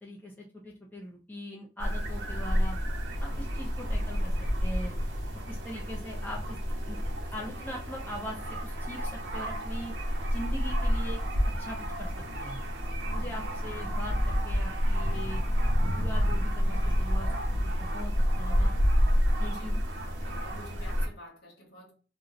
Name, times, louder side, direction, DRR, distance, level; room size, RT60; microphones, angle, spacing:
voice 1, 0.0-2.8 3.2-4.3 4.6-5.0 5.5-6.6 6.8-7.0 7.3-9.9 10.3-11.2 11.6-12.1 12.4-12.6 13.1-15.4 15.9-17.3 17.6-18.7 19.4-19.8, equal, 10° left, 0.5 m, -41 dB
sound 1, 1.8-21.1, equal, 80° right, 0.7 m, -29 dB
voice 2, 19.5-21.9, left 1 dB, 60° left, 1.2 m, -50 dB
2.6 x 2.1 x 3.7 m
head